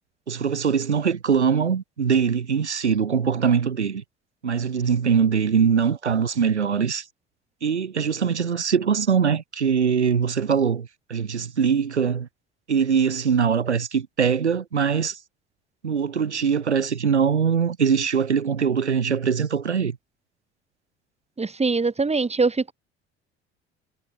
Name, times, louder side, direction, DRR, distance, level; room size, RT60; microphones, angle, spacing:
voice 1, 0.3-4.0 4.4-7.0 7.6-12.3 12.7-15.2 15.8-20.0, right 6 dB, 90° right, 3.9 m, -22 dB
voice 2, 21.4-22.7, right 4 dB, 20° right, 4.8 m, -23 dB
hypercardioid pair, 60°, 33 cm